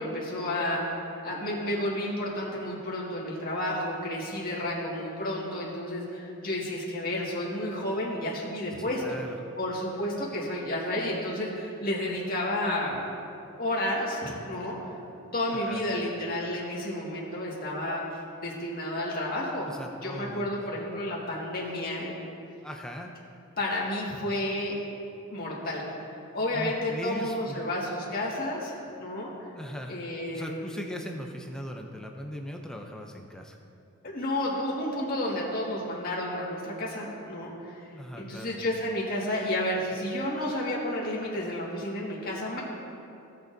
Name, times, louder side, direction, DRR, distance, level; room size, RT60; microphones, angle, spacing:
voice 1, 0.0-9.2 9.6-13.1 13.6-14.9 15.3-18.0 18.4-19.7 20.0-22.1 23.6-24.8 25.3-25.9 26.3-29.3 29.9-30.7 34.0-37.8 38.1-42.6, left 1 dB, 40° left, -5 dB, 1.9 m, -31 dB
voice 2, 8.8-9.4 15.5-15.8 19.7-20.8 22.6-23.1 26.5-27.6 29.5-30.0 30.3-33.6 37.9-38.6, equal, 5° left, 2 dB, 0.5 m, -39 dB
17.0 x 6.5 x 2.7 m, 2.7 s
head